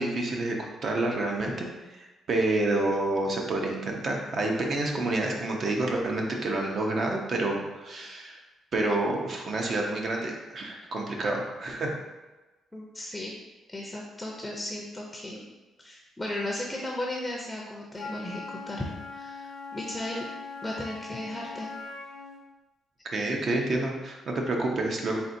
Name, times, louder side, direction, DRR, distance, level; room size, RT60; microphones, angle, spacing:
voice 1, 0.0-1.7 2.0-8.4 8.7-12.0 23.1-25.2, right 2 dB, 50° right, 1 dB, 0.7 m, -28 dB
voice 2, 12.7-13.3 13.7-15.5 15.8-18.4 18.7-20.2 20.6-21.7, left 1 dB, 10° left, -2 dB, 0.5 m, -35 dB
Wind instrument woodwind instrument, 17.9-22.5, left 4 dB, 65° left, 0.6 m, -41 dB
4.3 x 3.3 x 2.7 m, 1.1 s
cardioid pair, 90°, 0 cm